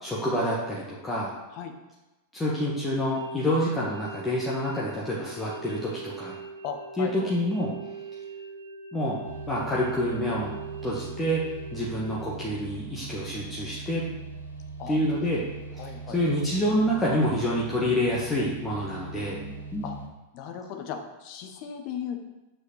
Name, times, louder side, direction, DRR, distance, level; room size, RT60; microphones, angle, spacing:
voice 1, 0.0-1.3 2.3-6.3 7.0-7.7 8.9-9.2 9.5-10.5 10.8-11.4 11.7-14.0 14.9-15.4 16.1-19.8, equal, 10° left, -6 dB, 1.5 m, -27 dB
sound 1, 3.1-12.2, right 4 dB, 70° right, 2.0 m, -42 dB
voice 2, 6.6-7.3 14.8-15.0 15.8-16.2 19.8-20.0 20.3-22.2, left 7 dB, 45° left, 4 dB, 1.1 m, -37 dB
sound 2, 9.2-20.1, right 4 dB, 90° right, 1.1 m, -40 dB
6.5 x 5.0 x 6.6 m, 1.1 s
figure-of-eight pair, 90°, 0 cm